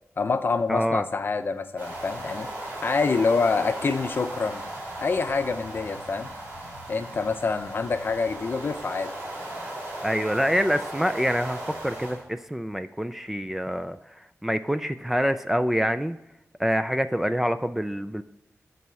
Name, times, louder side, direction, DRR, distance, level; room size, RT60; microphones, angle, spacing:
voice 1, 0.2-2.5 2.8-4.6 5.0-6.3 6.9-9.1, left 4 dB, 45° left, 9 dB, 0.6 m, -26 dB
voice 2, 0.7-1.1 10.0-16.2 16.6-18.2, equal, 5° right, 10 dB, 0.3 m, -26 dB
sound 1, 1.8-12.2, right 1 dB, 25° right, 4.0 m, -37 dB
12.0 x 4.2 x 6.9 m, 0.88 s
wide cardioid pair, 155°, 5 cm